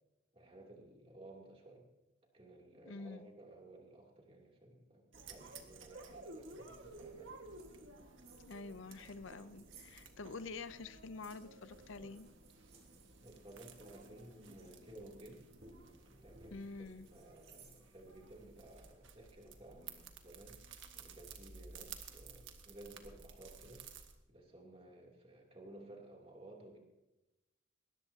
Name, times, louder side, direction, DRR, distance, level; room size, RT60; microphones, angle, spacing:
voice 1, 0.3-1.8 2.3-7.4 8.1-8.2 13.2-15.4 16.1-20.6 20.9-23.8 24.3-26.8, right 1 dB, 30° right, -1 dB, 2.9 m, -56 dB
voice 2, 2.8-3.3 8.4-12.3 16.5-17.1, left 3 dB, 75° left, 14 dB, 0.6 m, -47 dB
sound 1, 5.1-24.1, right 4 dB, 70° right, 1.6 m, -55 dB
sound 2, 6.6-18.9, right 2 dB, 50° right, 3.5 m, -63 dB
20.5 x 18.0 x 2.8 m, 0.98 s
head